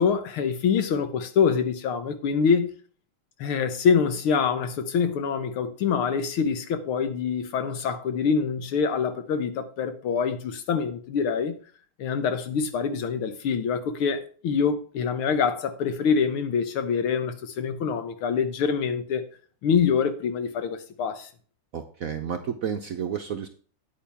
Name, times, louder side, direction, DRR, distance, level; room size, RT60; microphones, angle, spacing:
voice 1, 0.0-2.7 3.4-11.5 12.0-19.2 19.6-21.3, left 6 dB, 85° left, 2.0 m, -25 dB
voice 2, 21.7-23.5, right 7 dB, 60° right, 0.9 m, -31 dB
9.3 x 8.6 x 3.5 m
omnidirectional pair, 2.3 m